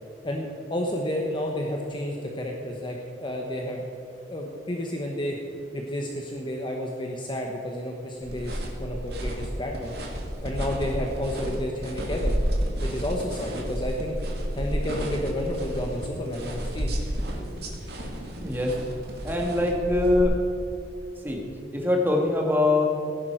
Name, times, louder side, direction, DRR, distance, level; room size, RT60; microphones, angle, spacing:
voice 1, 0.2-3.8 4.3-5.4 5.7-9.9 10.4-12.3 12.8-14.2 14.6-16.9, left 1 dB, 25° left, 0 dB, 1.1 m, -31 dB
sound 1, 8.2-20.2, equal, 60° right, 2.3 m, -31 dB
voice 2, 18.4-18.8 19.2-20.4 21.2-21.4 21.7-22.9, left 2 dB, 10° right, 0 dB, 1.7 m, -23 dB
17.5 x 10.5 x 4.6 m, 3.0 s
head